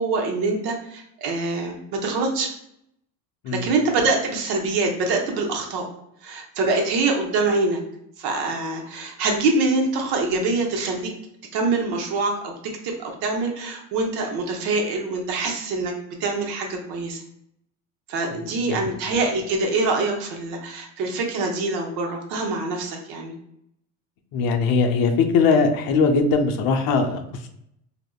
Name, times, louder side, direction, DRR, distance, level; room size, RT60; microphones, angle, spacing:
voice 1, 0.0-2.5 3.5-5.9 6.2-7.8 8.2-11.1 11.5-12.5 12.8-15.9 16.2-17.2 18.1-23.3, right 3 dB, 70° right, 2 dB, 0.8 m, -24 dB
voice 2, 24.3-27.5, left 4 dB, 60° left, 5 dB, 0.5 m, -20 dB
3.4 x 2.1 x 2.2 m, 0.75 s
supercardioid pair, 105°, 40 cm